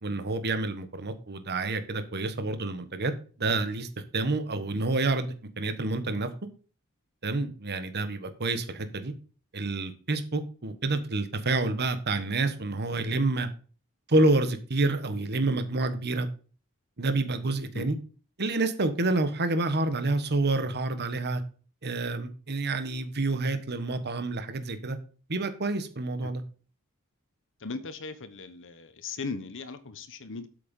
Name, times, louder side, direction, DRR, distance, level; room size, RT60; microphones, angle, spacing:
voice 1, 0.0-3.1 3.4-3.9 4.1-6.3 7.2-9.1 9.5-13.5 14.1-16.3 17.0-18.0 18.4-21.4 21.8-25.0 25.3-26.4, right 2 dB, 50° right, 1.3 m, -28 dB
voice 2, 27.6-30.5, left 4 dB, 60° left, 1.1 m, -38 dB
8.2 x 6.7 x 5.4 m
head